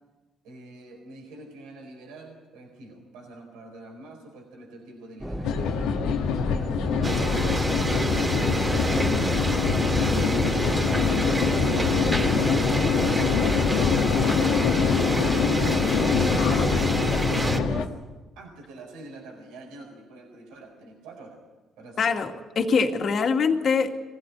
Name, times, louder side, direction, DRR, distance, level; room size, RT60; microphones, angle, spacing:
voice 1, 0.4-9.6 18.4-21.4 21.8-22.2, right 2 dB, 80° right, 1 dB, 4.5 m, -45 dB
sound 1, 5.2-17.8, equal, 10° right, 3.3 m, -32 dB
sound 2, 5.4-17.9, left 7 dB, 80° left, 1.5 m, -25 dB
sound 3, 7.0-17.6, right 2 dB, 25° right, 3.1 m, -28 dB
voice 2, 22.0-23.9, left 5 dB, 55° left, 4 dB, 2.3 m, -23 dB
23.0 x 16.0 x 9.8 m, 1.2 s
supercardioid pair, 60°, 0 cm